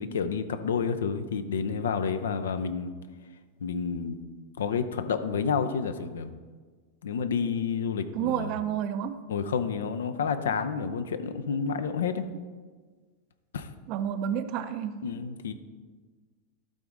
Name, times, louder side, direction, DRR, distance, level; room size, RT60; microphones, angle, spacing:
voice 1, 0.0-2.9 3.6-4.2 4.6-6.4 7.0-8.5 9.3-12.3 13.5-13.7 15.0-15.5, left 6 dB, 65° left, 10 dB, 0.5 m, -29 dB
voice 2, 8.1-9.2 13.9-15.0, right 9 dB, 40° right, 11 dB, 0.5 m, -30 dB
12.0 x 4.0 x 4.8 m, 1.5 s
figure-of-eight pair, 90°, 0 cm